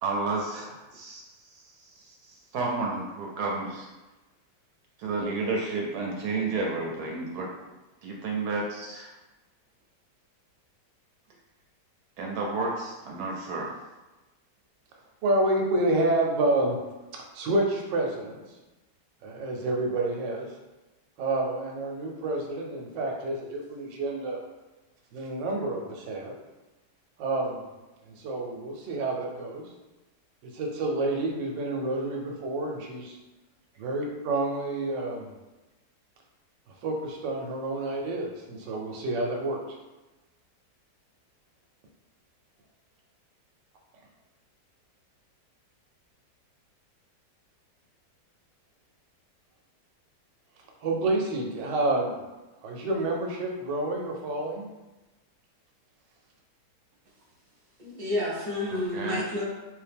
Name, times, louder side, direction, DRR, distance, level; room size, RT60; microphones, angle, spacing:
voice 1, 0.0-3.9 5.0-7.5 8.0-9.1 12.2-13.7 58.7-59.2, right 3 dB, 70° right, -1 dB, 1.1 m, -31 dB
voice 2, 15.2-16.8 17.1-18.4 19.2-20.5 21.2-24.4 25.1-26.3 27.2-27.6 28.1-29.7 30.4-33.2 33.8-35.3 36.8-39.6 50.8-52.2 52.6-54.7, right 2 dB, 90° right, 1 dB, 1.4 m, -29 dB
voice 3, 57.8-59.5, left 1 dB, 35° right, -5 dB, 0.8 m, -30 dB
3.4 x 2.7 x 3.4 m, 1.1 s
omnidirectional pair, 1.9 m